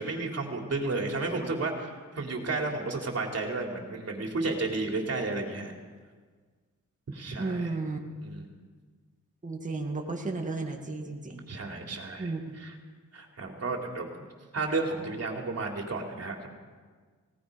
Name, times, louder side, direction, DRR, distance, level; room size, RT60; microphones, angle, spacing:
voice 1, 0.0-5.7 7.1-7.8 8.2-8.5 11.5-12.8 13.1-14.1 14.5-16.5, right 3 dB, 55° right, 1 dB, 3.5 m, -32 dB
voice 2, 7.4-8.0 9.4-11.4 12.2-12.6, right 3 dB, 25° right, 1 dB, 2.1 m, -33 dB
29.5 x 18.0 x 5.3 m, 1.5 s
wide cardioid pair, 160°, 31 cm